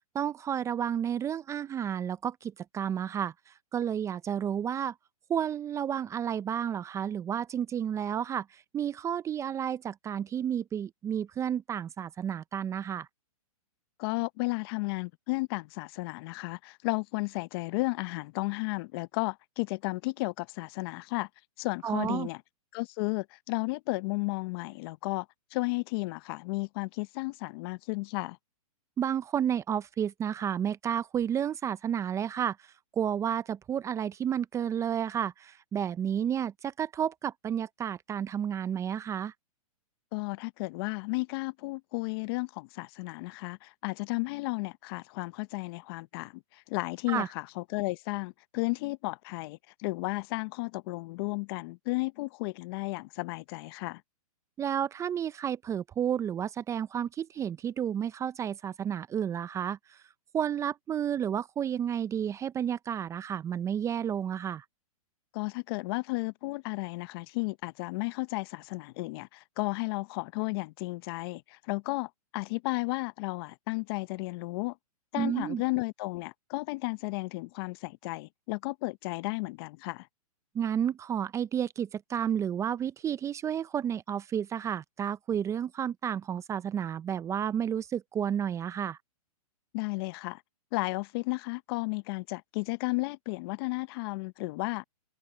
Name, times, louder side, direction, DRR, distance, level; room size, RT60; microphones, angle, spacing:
voice 1, 0.1-3.3 3.7-4.9 5.3-13.1 21.8-22.3 29.0-32.6 32.9-39.3 47.1-47.3 54.6-60.0 60.3-64.6 75.2-75.6 80.5-89.0, right 9 dB, 15° right, 0.6 m, -31 dB
voice 2, 14.0-21.3 21.6-22.4 22.7-25.3 25.5-28.4 40.1-54.0 65.3-74.8 75.1-80.1 89.7-90.4 90.7-94.8, left 25 dB, 40° left, 0.7 m, -33 dB
hypercardioid pair, 130°, 19 cm